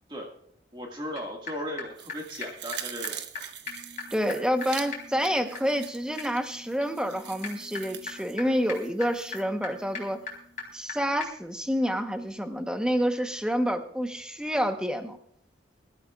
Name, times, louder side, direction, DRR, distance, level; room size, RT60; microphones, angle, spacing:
voice 1, 0.7-3.4, equal, 25° right, 0 dB, 1.9 m, -37 dB
sound 1, 1.2-1.3 1.5-1.6 1.8-1.9 2.1-2.2 2.4-2.5 2.7-2.8 3.0-3.1 3.3-3.4 3.7-10.9 11.2-11.3, left 4 dB, 45° left, 3.9 m, -41 dB
sound 2, 2.0-9.4 9.8-9.9, right 10 dB, 65° right, 1.1 m, -43 dB
voice 2, 4.1-10.2 10.7-15.2, equal, 5° right, 6 dB, 1.0 m, -28 dB
24.5 x 13.5 x 2.4 m, 0.66 s
head